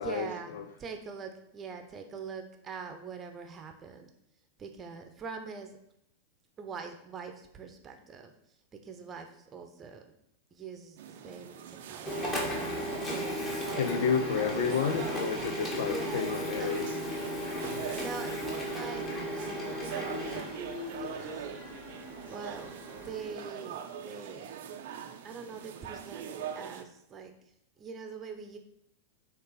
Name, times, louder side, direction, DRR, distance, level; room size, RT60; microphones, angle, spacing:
voice 1, 0.0-0.5 0.8-4.1 4.6-5.8 6.6-8.3 8.8-10.0 10.5-12.4 13.0-14.7 15.8-16.8 18.0-19.1 19.4-20.6 21.0-21.5 22.3-22.8 23.0-24.5 25.2-27.3 27.8-28.6, right 5 dB, 25° right, 6 dB, 0.9 m, -43 dB
sound 1, 11.0-26.8, right 8 dB, 55° right, 0.6 m, -42 dB
Printer, 12.0-23.3, equal, 20° left, 1.9 m, -36 dB
voice 2, 13.8-16.9, left 7 dB, 55° left, 9 dB, 0.6 m, -30 dB
7.9 x 3.3 x 5.0 m, 0.76 s
figure-of-eight pair, 90°, 0 cm